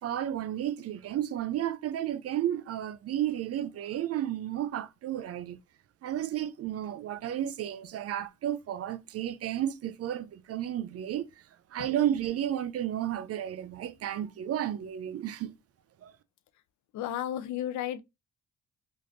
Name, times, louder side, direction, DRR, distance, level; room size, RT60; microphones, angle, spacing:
voice 1, 0.0-5.6 6.0-11.3 11.7-15.5 16.0-16.1, right 11 dB, 55° right, 0.4 m, -32 dB
voice 2, 16.9-18.0, left 11 dB, 70° left, 0.4 m, -33 dB
3.1 x 2.6 x 2.5 m
cardioid pair, 90°, 30 cm